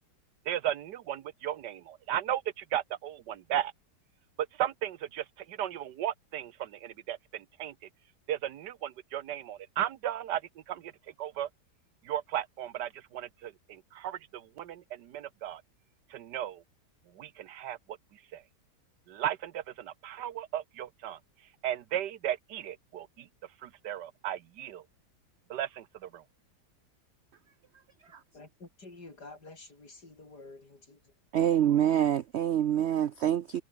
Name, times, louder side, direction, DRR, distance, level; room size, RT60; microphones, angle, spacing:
voice 1, 0.5-3.7 4.6-7.7 8.3-10.4 10.7-10.9 11.2-11.5 12.0-15.6 16.1-16.6 17.1-17.8 18.3-18.4 19.1-21.2 21.6-23.3 23.6-24.8 25.5-26.2, right 11 dB, 85° right, 1.5 m, -35 dB
voice 2, 28.3-31.1, left 3 dB, 70° left, 5.7 m, -50 dB
voice 3, 31.3-33.6, right 10 dB, 70° right, 0.6 m, -26 dB
omnidirectional pair, 1.8 m